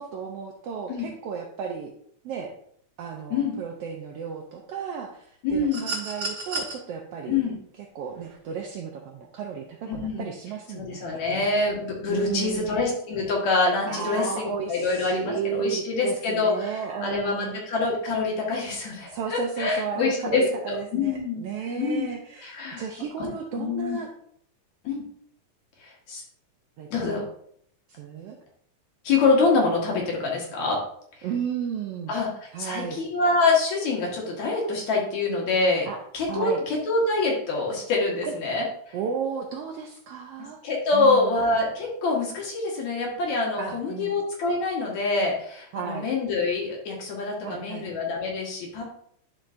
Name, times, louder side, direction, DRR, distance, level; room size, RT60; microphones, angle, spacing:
voice 1, 0.0-1.9 2.2-2.5 3.0-7.4 7.8-11.5 12.1-12.7 13.9-17.6 19.1-24.1 26.8-27.2 27.9-28.4 31.2-32.2 32.5-33.0 35.9-36.0 36.3-36.6 38.2-38.3 38.9-40.6 40.9-41.4 43.6-44.1 45.7-46.1 47.4-47.9, right 7 dB, 80° right, 2 dB, 1.3 m, -33 dB
voice 2, 5.4-5.8 7.3-7.5 9.9-10.3 10.7-16.7 17.0-21.4 21.8-22.1 22.4-22.8 23.6-24.0 24.8-25.0 25.8-26.2 26.9-27.2 29.0-30.8 32.1-32.3 32.6-35.9 36.1-39.0 40.6-48.8, left 3 dB, 65° left, -2 dB, 2.8 m, -25 dB
sound 1, 5.7-6.7 8.2-8.4, right 3 dB, 65° right, 3.1 m, -32 dB
10.5 x 5.0 x 2.5 m, 0.66 s
omnidirectional pair, 3.5 m